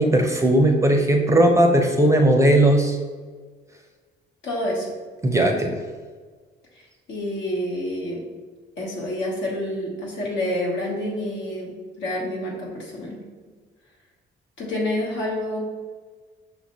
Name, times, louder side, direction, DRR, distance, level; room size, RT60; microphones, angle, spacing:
voice 1, 0.0-3.0 5.2-5.8, right 1 dB, 15° right, 3 dB, 0.5 m, -18 dB
voice 2, 4.4-4.9 6.7-6.8 7.1-8.2 8.8-13.2 14.6-15.6, left 1 dB, 70° left, -3 dB, 1.2 m, -28 dB
5.5 x 2.5 x 2.9 m, 1.5 s
cardioid pair, 90°, 20 cm